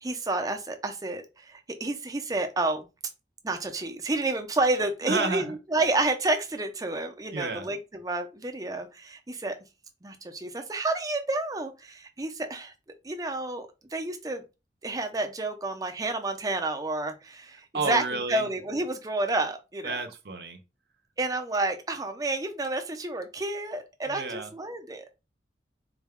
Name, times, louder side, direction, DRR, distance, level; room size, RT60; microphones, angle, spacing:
voice 1, 0.0-2.9 3.4-9.5 10.0-12.7 13.0-14.4 14.8-20.0 21.2-25.2, right 2 dB, 20° right, 0.5 m, -30 dB
voice 2, 5.0-5.5 7.3-7.7 17.7-18.4 19.8-20.6 24.1-24.5, right 3 dB, 60° right, 0.6 m, -31 dB
4.0 x 2.2 x 3.5 m
head